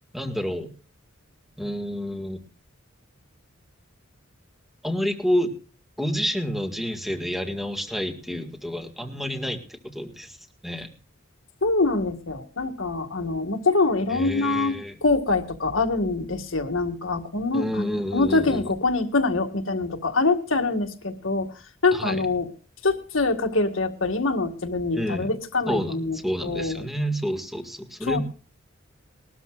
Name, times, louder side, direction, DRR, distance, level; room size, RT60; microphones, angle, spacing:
voice 1, 0.1-0.7 1.6-2.4 4.8-5.5 6.0-10.4 10.6-10.9 14.1-15.0 17.5-18.7 21.9-22.2 24.9-25.3 25.7-28.2, equal, ahead, 6 dB, 1.8 m, -29 dB
voice 2, 11.6-14.8 15.0-21.5 21.8-22.5 22.8-26.9 28.0-28.2, left 3 dB, 75° left, 6 dB, 1.8 m, -24 dB
21.0 x 13.0 x 2.4 m, 0.39 s
head